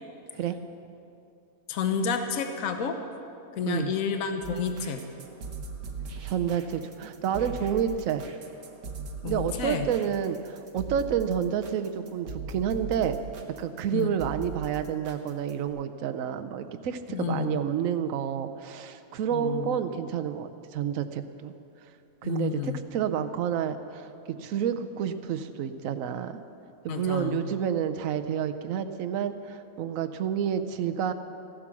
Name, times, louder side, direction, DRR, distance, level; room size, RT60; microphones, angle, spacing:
voice 1, 1.7-3.0 3.5-5.0 9.2-9.9 13.9-14.1 17.1-17.6 19.3-19.8 22.2-22.8 26.9-27.4, left 6 dB, 70° left, 7 dB, 1.3 m, -30 dB
sound 1, 4.4-15.7, right 5 dB, 85° right, 1.6 m, -39 dB
voice 2, 6.2-8.2 9.3-13.2 13.6-21.5 22.2-24.1 24.4-26.4 26.8-31.1, right 8 dB, 70° right, 9 dB, 1.1 m, -29 dB
15.5 x 11.5 x 6.1 m, 2.6 s
omnidirectional pair, 1.5 m